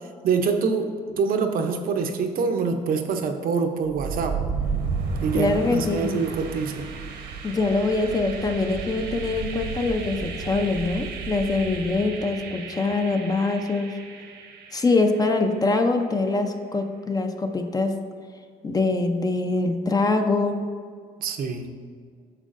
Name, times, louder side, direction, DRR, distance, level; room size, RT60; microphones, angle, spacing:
voice 1, 0.2-4.4 5.2-6.9 21.2-21.7, right 5 dB, 60° right, 5 dB, 0.7 m, -25 dB
sound 1, 3.8-15.7, right 5 dB, 80° right, 1.1 m, -33 dB
voice 2, 5.3-6.1 7.4-14.0 14.7-17.9 18.6-20.7, left 3 dB, 20° left, 5 dB, 0.5 m, -24 dB
8.9 x 6.4 x 2.6 m, 2.1 s
cardioid pair, 110°, 17 cm